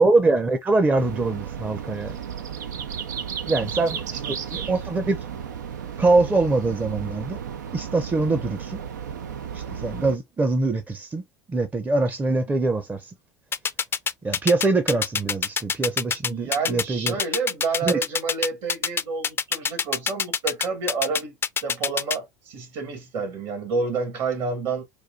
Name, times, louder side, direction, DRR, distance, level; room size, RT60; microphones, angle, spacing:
voice 1, 0.0-2.2 3.5-5.2 6.0-7.4 7.7-8.8 9.5-11.2 11.5-13.1 14.2-17.2 17.8-18.0, right 3 dB, 15° right, 0.6 m, -23 dB
sound 1, 1.0-10.2, right 8 dB, 85° right, 0.5 m, -34 dB
voice 2, 4.1-4.7 16.2-24.8, right 4 dB, 55° right, 1.8 m, -29 dB
sound 2, 13.5-22.2, left 6 dB, 25° left, 0.4 m, -24 dB
4.3 x 2.4 x 2.4 m
hypercardioid pair, 80°, 9 cm